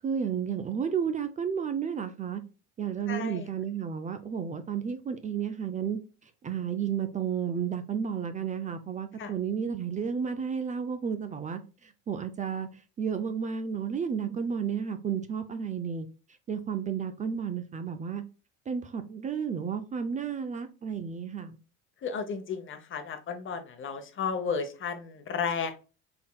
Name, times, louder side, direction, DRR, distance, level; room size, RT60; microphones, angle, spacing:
voice 1, 0.0-2.4 2.8-6.0 6.4-16.1 16.5-18.2 18.7-21.6, right 7 dB, 25° right, 0.4 m, -32 dB
voice 2, 3.1-3.5 9.2-9.3 22.0-25.9, left 6 dB, 35° left, 0.8 m, -33 dB
3.8 x 3.6 x 2.2 m
supercardioid pair, 110°, 34 cm